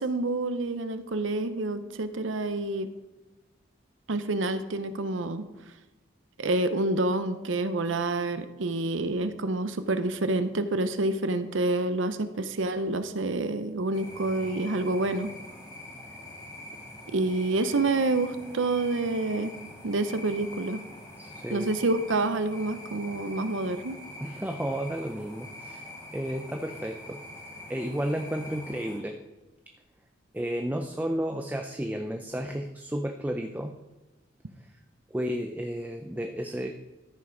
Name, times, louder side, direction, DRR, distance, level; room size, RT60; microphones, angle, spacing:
voice 1, 0.0-2.9 4.1-5.5 6.4-15.3 17.1-19.6 19.8-20.8 21.5-24.0, right 2 dB, 90° right, 10 dB, 0.8 m, -28 dB
sound 1, 13.9-29.0, left 1 dB, 20° left, 2.4 m, -44 dB
voice 2, 21.2-21.7 24.2-27.2 27.7-29.2 30.3-33.8 35.1-36.7, right 1 dB, 10° right, 4 dB, 0.5 m, -32 dB
13.5 x 5.7 x 5.2 m, 1.1 s
head